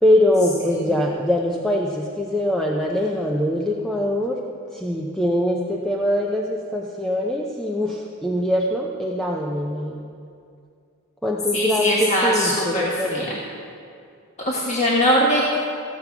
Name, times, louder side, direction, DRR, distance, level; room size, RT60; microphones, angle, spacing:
voice 1, 0.0-4.4 4.7-10.1 11.2-13.3, left 1 dB, ahead, -2 dB, 0.7 m, -23 dB
voice 2, 11.5-13.4 14.4-15.6, equal, 30° left, -5 dB, 1.3 m, -21 dB
15.5 x 7.5 x 5.8 m, 2.4 s
head